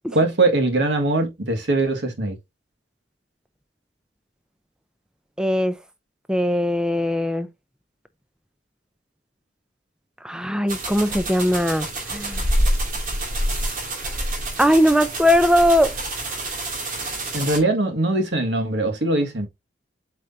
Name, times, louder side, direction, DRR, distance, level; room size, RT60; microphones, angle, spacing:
voice 1, 0.1-2.4 17.3-19.5, right 2 dB, 80° right, 1.9 m, -21 dB
voice 2, 5.4-5.7 6.3-7.5 10.2-12.4 14.6-16.0, equal, 5° right, 0.5 m, -20 dB
sound 1, 10.7-17.6, right 1 dB, 50° right, 2.6 m, -27 dB
8.1 x 4.9 x 2.7 m
head